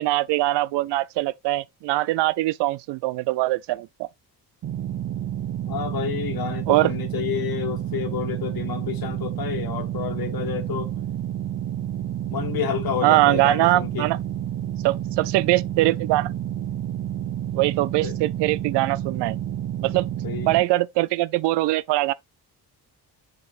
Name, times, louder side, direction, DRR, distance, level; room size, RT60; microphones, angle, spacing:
voice 1, 0.0-4.1 6.7-6.9 13.0-14.2 14.8-16.3 17.5-19.4 19.8-20.1 20.5-22.1, right 17 dB, 90° right, 0.5 m, -22 dB
sound 1, 4.6-20.6, right 11 dB, 40° right, 0.7 m, -30 dB
voice 2, 5.7-10.9 12.3-14.1 18.0-18.2 20.2-20.5, left 9 dB, 60° left, 1.5 m, -30 dB
7.1 x 6.9 x 2.4 m
cardioid pair, 115°, 40 cm